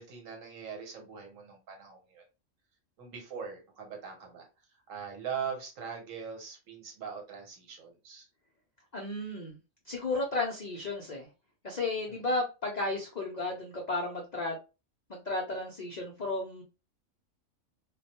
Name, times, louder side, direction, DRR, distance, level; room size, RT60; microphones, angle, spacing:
voice 1, 0.0-2.2 3.0-4.5 4.9-8.3 12.1-12.2, right 6 dB, 75° right, 1.2 m, -41 dB
voice 2, 8.9-9.6 9.9-11.3 11.6-14.6 15.1-16.6, left 2 dB, 65° left, 0.4 m, -33 dB
2.3 x 2.1 x 2.8 m
omnidirectional pair, 1.4 m